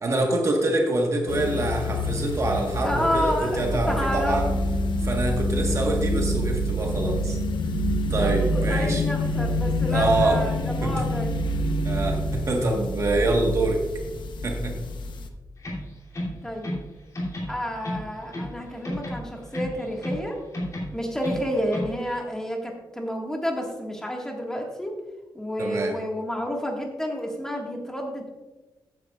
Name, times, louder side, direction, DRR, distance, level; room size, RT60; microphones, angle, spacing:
voice 1, 0.0-4.5 5.0-7.4 8.1-9.0 9.9-10.4 10.8-10.9 11.8-13.8 14.4-14.8 25.6-26.0, right 2 dB, 40° right, 1 dB, 1.3 m, -25 dB
sound 1, 1.3-15.3, left 1 dB, 85° left, 0.8 m, -27 dB
voice 2, 2.8-4.7 5.0-5.9 8.2-11.3 16.4-16.8 17.5-20.4 20.9-24.9 25.3-28.3, equal, 5° left, 0 dB, 1.6 m, -30 dB
sound 2, 15.6-16.9 17.1-18.6 18.8-20.3 20.5-22.0, left 1 dB, 45° left, 2.7 m, -32 dB
14.5 x 9.4 x 2.4 m, 1.1 s
wide cardioid pair, 175°, 8 cm